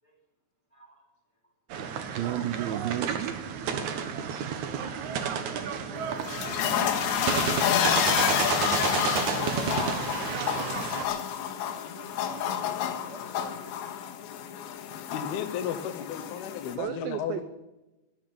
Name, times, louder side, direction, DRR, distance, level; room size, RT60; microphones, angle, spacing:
voice 1, 0.7-1.1 1.4-1.5 5.3-9.0 9.3-10.0 11.6-13.7, right 1 dB, 5° left, -1 dB, 4.1 m, -48 dB
sound 1, 1.7-11.0, right 7 dB, 65° right, 2.0 m, -31 dB
voice 2, 2.1-3.4 16.8-17.4, right 12 dB, 90° right, 11 dB, 2.0 m, -32 dB
sound 2, 6.0-16.7, left 9 dB, 85° left, 3.8 m, -29 dB
voice 3, 15.1-17.4, left 9 dB, 70° left, 6 dB, 2.7 m, -34 dB
13.5 x 10.5 x 8.7 m, 1.0 s
omnidirectional pair, 5.1 m